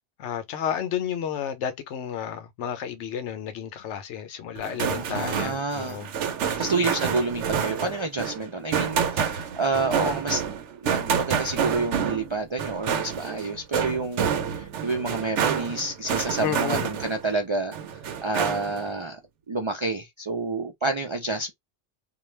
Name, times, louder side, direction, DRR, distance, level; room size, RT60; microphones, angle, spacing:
voice 1, 0.2-6.1 16.4-16.9, left 9 dB, 85° left, 0.9 m, -31 dB
sound 1, 4.6-17.3 17.7-18.9, right 7 dB, 90° right, 0.9 m, -28 dB
voice 2, 5.0-6.0 6.6-10.5 10.8-14.3 14.6-17.7 18.2-19.2 19.5-21.5, right 3 dB, 50° right, 0.3 m, -28 dB
2.3 x 2.2 x 3.1 m
omnidirectional pair, 1.2 m